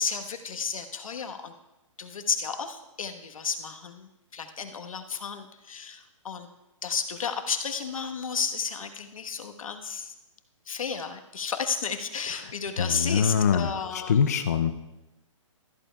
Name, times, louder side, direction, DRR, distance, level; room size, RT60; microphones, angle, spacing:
voice 1, 0.0-1.5 2.0-6.5 6.8-10.1 10.7-14.2, left 6 dB, 90° left, 6 dB, 1.2 m, -32 dB
voice 2, 12.8-14.7, left 7 dB, 30° left, 8 dB, 0.4 m, -24 dB
14.0 x 13.0 x 2.3 m, 0.99 s
hypercardioid pair, 175°, 17 cm